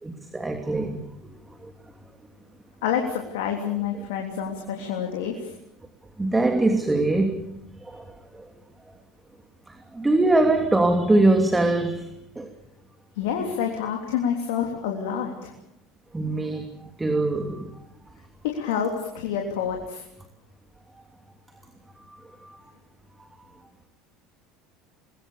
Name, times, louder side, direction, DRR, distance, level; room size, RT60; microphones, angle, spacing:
voice 1, 0.0-1.1 1.6-1.7 6.2-7.4 7.8-8.5 9.7-12.1 12.4-12.5 16.1-17.7 22.1-22.2 22.4-22.6, right 2 dB, 15° right, 5 dB, 2.9 m, -23 dB
voice 2, 2.8-5.5 13.1-15.5 18.4-20.0, left 8 dB, 70° left, 2 dB, 3.3 m, -28 dB
26.5 x 22.0 x 7.0 m, 0.82 s
hypercardioid pair, 70°, 0 cm